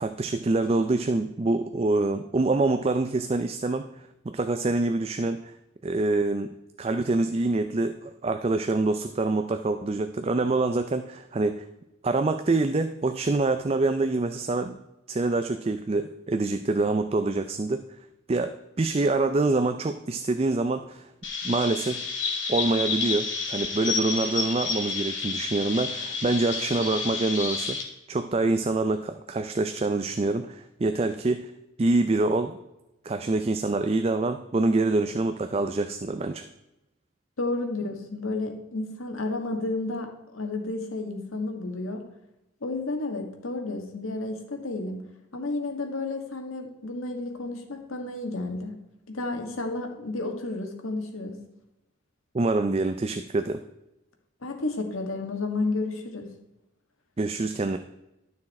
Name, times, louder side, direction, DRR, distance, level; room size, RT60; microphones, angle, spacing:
voice 1, 0.0-3.9 4.2-5.5 5.8-6.5 6.8-11.6 12.0-14.8 15.1-17.8 18.3-21.1 21.4-22.0 22.5-27.8 28.1-31.5 31.8-32.6 33.0-36.5 52.3-53.6 57.2-57.8, right 2 dB, 30° right, 8 dB, 0.4 m, -26 dB
Chirp tweet, 21.2-27.8, left 4 dB, 60° left, 2.4 m, -30 dB
voice 2, 37.4-42.0 42.6-45.0 45.3-48.7 49.1-51.4 54.4-56.3, left 2 dB, 90° left, 3 dB, 1.7 m, -31 dB
12.0 x 6.4 x 4.2 m, 0.93 s
head